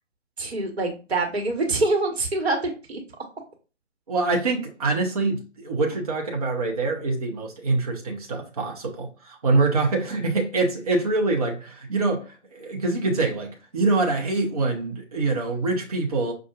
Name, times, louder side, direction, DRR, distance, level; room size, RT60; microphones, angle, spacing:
voice 1, 0.4-3.0, right 2 dB, 55° right, 1.3 m, -25 dB
voice 2, 4.1-16.3, right 3 dB, 30° right, 0.6 m, -25 dB
5.5 x 2.4 x 2.4 m
figure-of-eight pair, 145°, 37 cm